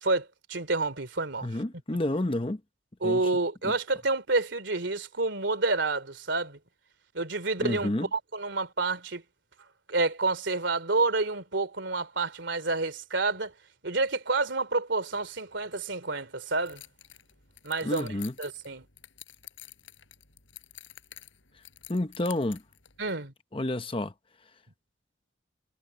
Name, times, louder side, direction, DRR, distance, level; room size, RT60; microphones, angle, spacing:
voice 1, 0.0-1.5 3.0-6.6 7.1-9.2 9.9-13.5 13.8-16.8 17.6-18.1 18.4-18.9 23.0-23.3, right 3 dB, 70° right, 2.9 m, -29 dB
voice 2, 1.4-2.6 3.0-3.2 3.6-3.7 7.6-8.1 17.8-18.3 21.9-22.6 23.5-24.1, left 1 dB, 30° left, 0.9 m, -29 dB
sound 1, 16.7-23.1, left 13 dB, 80° left, 7.6 m, -50 dB
head